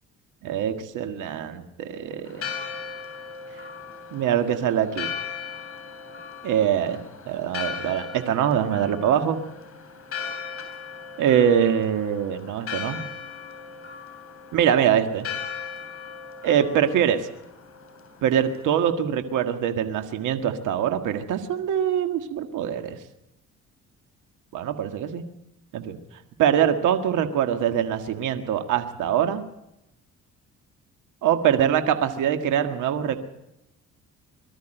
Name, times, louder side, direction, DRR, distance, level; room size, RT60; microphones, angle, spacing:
voice 1, 0.4-2.5 4.1-5.1 6.4-9.4 11.2-13.0 14.5-15.3 16.4-17.2 18.2-23.0 24.5-25.2 25.7-26.0 26.4-29.4 31.2-33.2, right 9 dB, 85° right, 8 dB, 1.8 m, -23 dB
Church bell, 2.3-18.9, left 6 dB, 45° left, 6.3 m, -38 dB
23.0 x 13.0 x 9.0 m, 0.86 s
cardioid pair, 90°, 30 cm